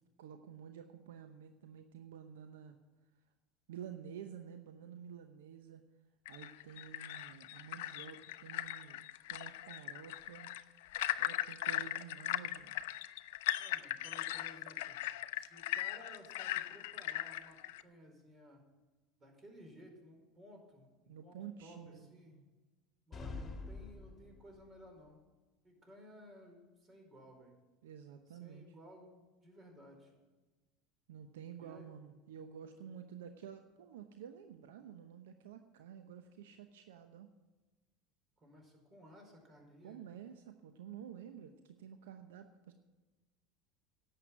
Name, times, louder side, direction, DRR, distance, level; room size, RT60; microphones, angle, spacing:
voice 1, 0.2-2.8 3.7-5.8 6.3-10.5 11.2-12.8 21.1-22.4 27.8-28.7 31.1-37.3 39.8-42.7, right 8 dB, 80° right, 7 dB, 0.8 m, -51 dB
sound 1, 6.2-17.8, left 14 dB, 70° left, 0.5 m, -39 dB
voice 2, 13.6-15.0 15.3-18.6 19.2-22.4 23.1-25.2 25.6-27.5 28.3-30.2 31.6-31.9 38.4-40.0, equal, 30° right, 2 dB, 4.8 m, -57 dB
sound 2, 23.1-24.8, left 3 dB, 25° left, 2.2 m, -46 dB
11.0 x 7.9 x 9.0 m, 1.2 s
hypercardioid pair, 80°, 0 cm